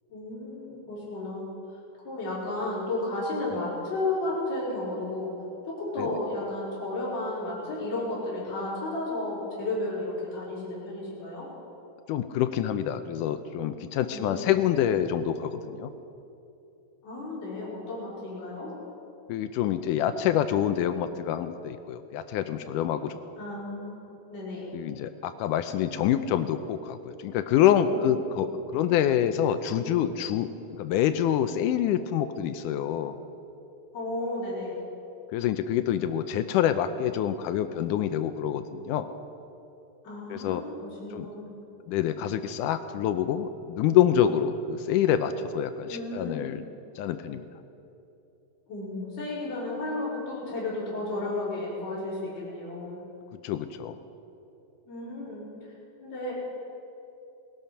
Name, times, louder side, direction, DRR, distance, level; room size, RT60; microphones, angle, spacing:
voice 1, 0.1-1.5 2.0-5.3 5.7-11.5 14.1-14.6 17.0-18.7 23.4-23.9 24.3-24.7 27.8-28.5 33.9-34.8 40.0-41.5 45.9-46.6 48.7-53.0 54.9-55.4 56.0-56.3, left 2 dB, 50° left, -9 dB, 5.9 m, -33 dB
voice 2, 12.1-15.9 19.3-23.2 24.7-33.2 35.3-39.1 40.3-40.6 41.1-41.3 41.9-46.6 47.0-47.5 53.4-54.0, left 10 dB, 80° left, 10 dB, 2.0 m, -26 dB
19.5 x 12.5 x 5.7 m, 2.7 s
omnidirectional pair, 4.1 m